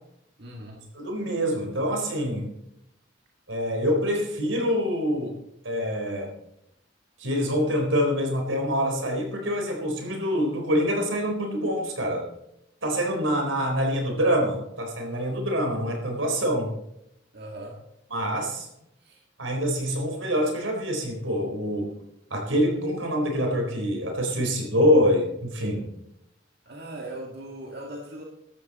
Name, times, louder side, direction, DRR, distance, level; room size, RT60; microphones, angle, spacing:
voice 1, 0.4-0.8 17.3-17.8 19.0-19.2 26.6-28.2, right 1 dB, 55° right, -1 dB, 2.0 m, -39 dB
voice 2, 0.9-2.5 3.5-5.3 5.6-6.3 7.2-12.2 12.8-16.7 18.1-18.7 19.4-21.9 22.3-25.9, equal, 85° right, 2 dB, 4.3 m, -25 dB
15.5 x 12.5 x 4.2 m, 0.82 s
head